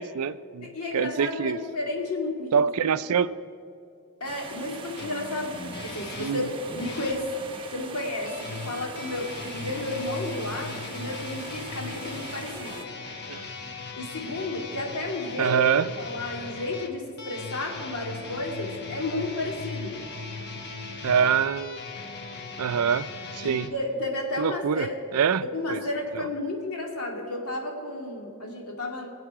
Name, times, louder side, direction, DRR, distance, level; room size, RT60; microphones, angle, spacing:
voice 1, 0.0-1.6 2.5-3.4 6.2-6.4 13.3-13.4 15.4-15.9 21.0-21.8 22.6-23.1 23.3-23.7 24.4-24.9 25.1-25.8, right 7 dB, 75° right, 15 dB, 0.4 m, -25 dB
voice 2, 0.7-2.7 4.2-12.8 13.9-15.6 16.0-20.0 23.4-24.9 25.5-29.1, left 2 dB, 75° left, 0 dB, 2.4 m, -32 dB
sound 1, 4.2-12.8, right 4 dB, 25° right, 1.1 m, -42 dB
sound 2, 5.0-7.2 8.2-23.7, left 4 dB, 50° left, 1.2 m, -38 dB
23.5 x 8.1 x 4.9 m, 2.5 s
head